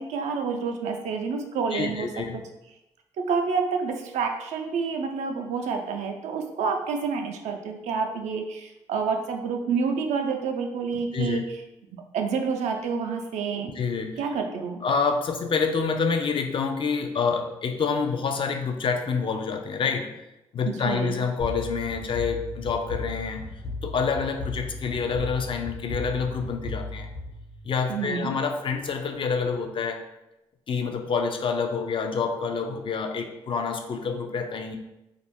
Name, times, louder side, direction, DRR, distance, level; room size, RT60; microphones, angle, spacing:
voice 1, 0.0-2.2 3.2-11.4 11.9-13.8 14.2-14.8 20.7-21.2 27.9-28.3, right 5 dB, 80° right, 4 dB, 0.4 m, -28 dB
voice 2, 1.7-2.4 11.1-11.4 13.8-14.2 14.8-20.1 20.5-23.4 23.8-27.1 27.6-30.0 30.7-34.8, left 5 dB, 45° left, 5 dB, 0.4 m, -27 dB
sound 1, 21.4-28.0, left 2 dB, 60° left, 1.1 m, -36 dB
2.4 x 2.0 x 3.4 m, 0.93 s
supercardioid pair, 55°, 12 cm